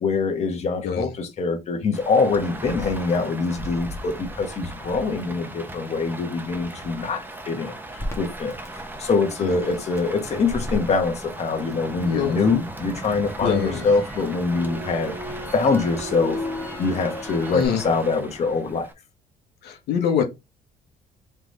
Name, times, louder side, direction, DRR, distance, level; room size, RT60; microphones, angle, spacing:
voice 1, 0.0-8.6 9.0-15.2 15.5-16.4 16.8-18.9, left 4 dB, 40° left, 1.2 m, -24 dB
Rain, 1.9-18.9, right 1 dB, 10° right, 0.8 m, -37 dB
Crackle, 8.0-12.1 12.5-17.7, left 1 dB, 15° left, 1.3 m, -35 dB
voice 2, 12.0-12.4 13.4-14.0 17.5-17.8 19.6-20.2, left 8 dB, 75° left, 1.1 m, -24 dB
3.6 x 3.3 x 3.2 m
cardioid pair, 110°, 17 cm